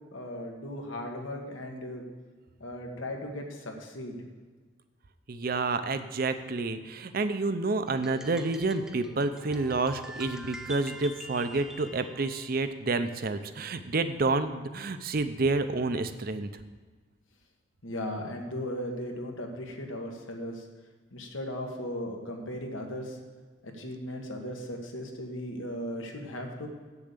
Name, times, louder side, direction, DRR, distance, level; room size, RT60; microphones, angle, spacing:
voice 1, 0.1-2.1 2.6-4.2 17.8-20.6 21.1-23.2 23.6-26.7, left 1 dB, 85° left, 2 dB, 1.6 m, -37 dB
voice 2, 5.3-16.5, right 3 dB, 50° right, 10 dB, 0.6 m, -29 dB
sound 1, 7.9-12.6, equal, 5° right, 0.4 m, -45 dB
8.4 x 7.0 x 6.7 m, 1.4 s
head